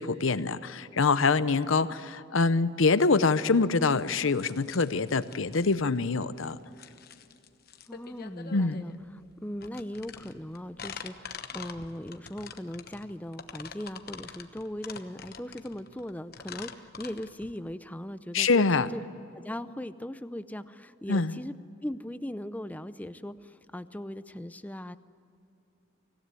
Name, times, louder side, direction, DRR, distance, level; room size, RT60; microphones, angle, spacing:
voice 1, 0.0-6.6 8.5-8.8 18.3-18.9 21.1-21.3, left 4 dB, 75° left, 15 dB, 0.8 m, -25 dB
sound 1, 4.0-17.7, left 6 dB, 50° left, 1.1 m, -45 dB
voice 2, 7.9-19.0 19.3-21.6 21.8-25.0, left 1 dB, 10° left, 13 dB, 0.5 m, -39 dB
25.0 x 16.0 x 9.7 m, 2.7 s
head